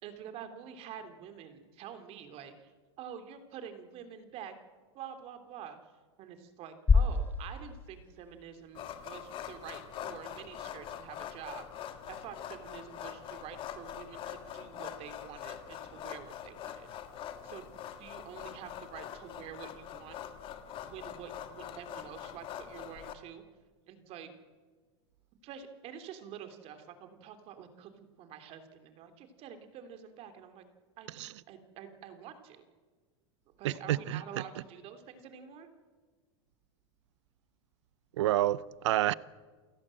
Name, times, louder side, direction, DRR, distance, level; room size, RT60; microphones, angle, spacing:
voice 1, 0.0-2.7 3.0-4.5 4.9-5.8 6.2-11.7 12.1-16.9 17.4-20.2 20.8-23.4 23.9-24.3 25.4-30.6 31.0-32.6 33.6-35.7, right 8 dB, 40° right, 3.0 m, -47 dB
sound 1, 6.9-9.0, left 4 dB, 15° left, 0.8 m, -28 dB
sound 2, 8.7-23.1, left 9 dB, 35° left, 2.0 m, -44 dB
voice 2, 33.6-34.2 38.2-39.1, right 14 dB, 80° right, 0.7 m, -28 dB
29.0 x 16.5 x 7.7 m
supercardioid pair, 135°, 15 cm